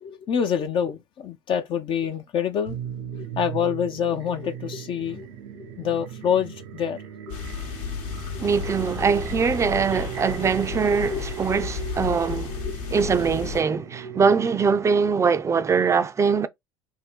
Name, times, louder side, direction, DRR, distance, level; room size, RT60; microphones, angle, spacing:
voice 1, 0.0-2.8 3.1-5.3 5.5-7.0 7.3-7.4 11.1-11.2 12.1-12.2, left 8 dB, 45° left, 0.6 m, -26 dB
sound 1, 2.7-14.8, right 9 dB, 75° right, 0.7 m, -38 dB
sound 2, 7.3-13.6, left 8 dB, 65° left, 1.1 m, -33 dB
voice 2, 8.4-12.5 12.9-16.5, right 5 dB, 25° right, 0.5 m, -22 dB
3.7 x 2.1 x 4.4 m
hypercardioid pair, 75°, 12 cm